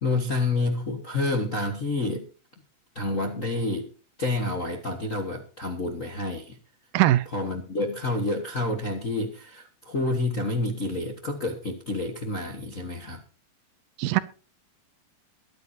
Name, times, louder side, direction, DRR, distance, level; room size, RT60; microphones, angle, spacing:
voice 1, 0.0-2.3 2.9-3.9 4.2-6.6 7.3-13.2, left 2 dB, 80° left, 3 dB, 0.7 m, -28 dB
voice 2, 6.9-7.3 14.0-14.2, right 15 dB, 85° right, 14 dB, 2.6 m, -20 dB
23.0 x 9.5 x 2.7 m, 0.38 s
omnidirectional pair, 4.1 m